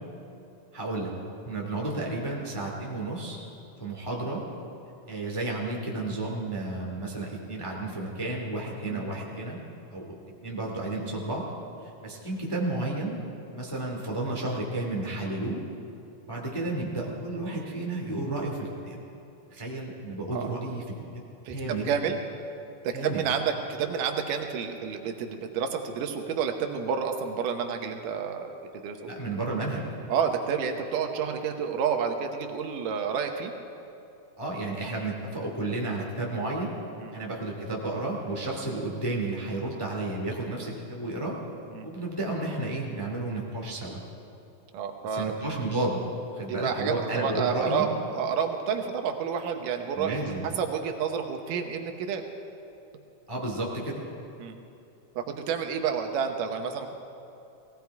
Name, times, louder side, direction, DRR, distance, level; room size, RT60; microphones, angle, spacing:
voice 1, 0.7-1.1 1.4-3.4 3.8-4.4 5.1-9.6 9.9-10.1 10.4-11.5 11.8-13.2 13.5-15.6 16.3-19.0 19.5-21.2 21.5-21.9 22.9-23.2 29.1-29.9 34.4-36.7 37.1-41.3 41.8-44.0 45.1-46.0 46.3-47.9 49.9-50.5 53.3-54.0, right 2 dB, 10° left, -2 dB, 1.4 m, -32 dB
voice 2, 21.5-22.2 22.8-28.6 28.8-29.0 30.1-33.5 37.0-37.1 41.8-41.9 44.7-45.3 46.5-52.2 54.4-54.6 55.2-56.9, right 7 dB, 80° right, 4 dB, 2.6 m, -30 dB
18.5 x 17.0 x 4.7 m, 2.8 s
omnidirectional pair, 3.8 m